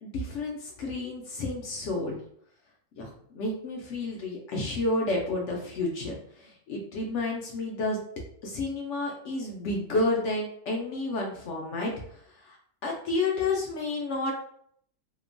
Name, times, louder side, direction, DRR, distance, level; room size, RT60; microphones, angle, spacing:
voice 1, 0.0-2.2 3.0-8.0 8.4-12.6 12.8-14.3, left 2 dB, 65° left, 0 dB, 0.7 m, -31 dB
2.9 x 2.1 x 2.5 m, 0.65 s
omnidirectional pair, 1.6 m